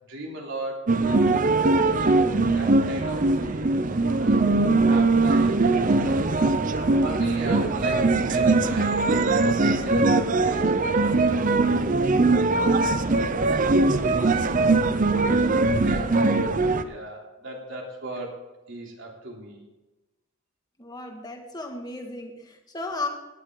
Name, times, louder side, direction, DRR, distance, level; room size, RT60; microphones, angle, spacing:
voice 1, 0.0-5.6 5.9-9.1 9.4-10.9 11.6-12.2 12.5-13.0 13.4-13.9 14.2-15.1 15.4-16.4 16.8-18.4 18.7-19.7, right 2 dB, 60° right, -1 dB, 3.4 m, -38 dB
sound 1, 0.9-16.8, right 3 dB, 40° right, 0.7 m, -21 dB
voice 2, 20.8-23.1, left 3 dB, 20° left, 3 dB, 1.8 m, -34 dB
18.0 x 11.0 x 3.9 m, 1.1 s
head